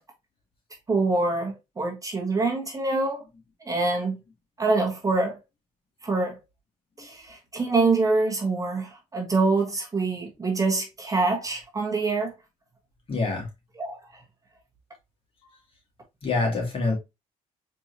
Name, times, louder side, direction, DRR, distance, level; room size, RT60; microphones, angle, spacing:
voice 1, 0.9-3.2 3.7-4.2 4.6-5.4 6.0-6.3 7.0-12.3 13.8-14.0, right 3 dB, 25° right, 1.4 m, -25 dB
voice 2, 13.1-13.5 16.2-16.9, left 3 dB, 45° left, 2.3 m, -25 dB
4.4 x 3.4 x 2.7 m
supercardioid pair, 75°, 13 cm